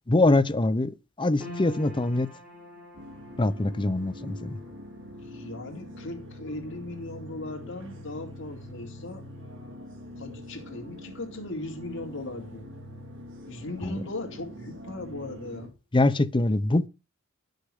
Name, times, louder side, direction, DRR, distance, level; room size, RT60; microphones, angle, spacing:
voice 1, 0.1-2.3 3.4-4.6 13.8-14.0 15.9-16.9, left 2 dB, 25° left, 0.6 m, -24 dB
sound 1, 1.4-13.8 14.1-15.0 15.5-15.6, left 2 dB, 5° right, 5.1 m, -50 dB
sound 2, 2.9-15.7, left 1 dB, 60° right, 2.5 m, -44 dB
voice 2, 5.2-9.2 10.2-12.7 13.5-15.7, left 2 dB, 60° left, 2.4 m, -38 dB
11.0 x 6.5 x 4.9 m
head